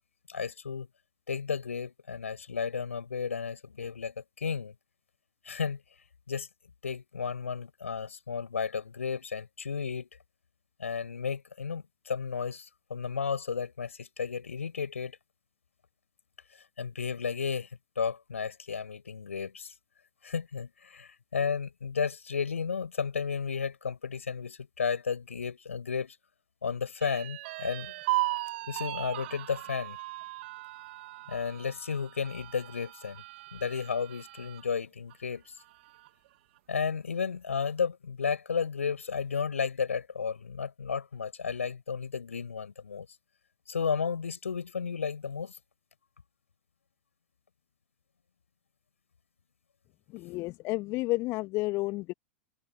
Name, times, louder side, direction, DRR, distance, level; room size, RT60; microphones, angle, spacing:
voice 1, 0.3-0.9 1.3-4.7 5.4-5.8 6.3-6.5 6.8-10.1 10.8-15.2 16.8-19.7 20.2-26.2 26.6-27.9 28.7-30.0 31.3-33.2 33.5-35.4 36.7-43.1 43.7-45.6, left 6 dB, 75° left, 6.2 m, -33 dB
sound 1, 27.0-34.7 35.1-35.2 35.6-36.3, right 19 dB, 50° right, 1.5 m, -37 dB
voice 2, 50.1-52.1, left 21 dB, 40° left, 1.7 m, -31 dB
figure-of-eight pair, 95°, 7 cm